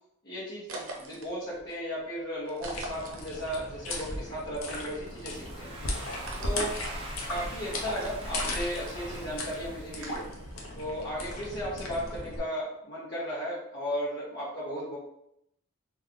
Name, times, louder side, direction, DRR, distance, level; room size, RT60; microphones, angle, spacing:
voice 1, 0.2-5.8 6.4-6.7 7.3-10.2 10.8-15.0, equal, 50° left, -8 dB, 0.7 m, -35 dB
sound 1, 0.7-4.7 4.9-10.9, right 2 dB, 75° right, 0.6 m, -46 dB
sound 2, 2.6-12.4, left 1 dB, 90° left, 0.6 m, -37 dB
Domestic sounds home sounds, 5.1-10.7, right 2 dB, 25° right, 0.5 m, -45 dB
2.4 x 2.3 x 3.5 m, 0.78 s
head